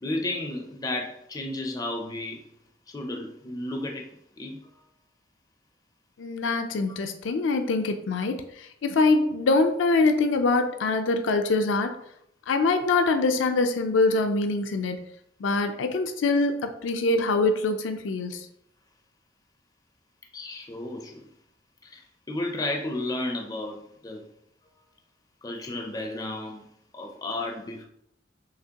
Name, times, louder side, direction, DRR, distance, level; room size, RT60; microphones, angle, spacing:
voice 1, 0.0-2.4 2.9-4.1 4.4-4.7 17.4-17.5 20.3-21.3 21.8-24.2 25.4-26.6 26.9-27.9, left 2 dB, 20° left, 3 dB, 0.4 m, -33 dB
voice 2, 6.2-12.0 12.5-15.0 15.4-18.5, left 3 dB, 85° left, 7 dB, 0.4 m, -24 dB
5.8 x 2.9 x 2.8 m, 0.72 s
head